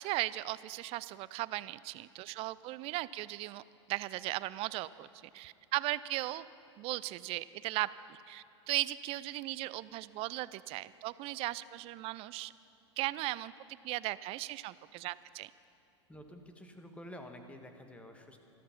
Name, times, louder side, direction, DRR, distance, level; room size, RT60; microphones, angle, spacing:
voice 1, 0.0-3.6 3.9-5.1 5.3-6.5 6.8-12.5 13.0-13.5 13.8-15.5, right 18 dB, 40° right, 18 dB, 0.4 m, -37 dB
voice 2, 16.1-18.4, equal, 10° left, 5 dB, 1.4 m, -49 dB
13.5 x 13.5 x 5.8 m, 2.8 s
hypercardioid pair, 100°, 15 cm